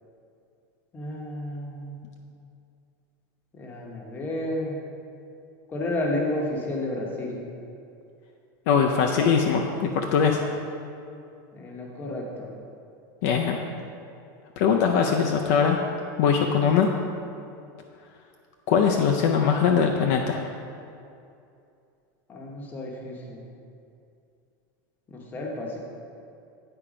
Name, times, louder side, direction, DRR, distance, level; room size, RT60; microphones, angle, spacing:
voice 1, 0.9-2.0 3.5-4.8 5.7-7.4 11.5-12.5 16.5-16.7 22.3-23.4 25.1-25.8, left 1 dB, 15° left, -1 dB, 0.9 m, -31 dB
voice 2, 8.7-10.4 13.2-13.6 14.6-15.8 16.2-16.9 18.7-20.4, left 6 dB, 50° left, 2 dB, 0.5 m, -21 dB
8.8 x 4.4 x 5.0 m, 2.5 s
supercardioid pair, 170°, 11 cm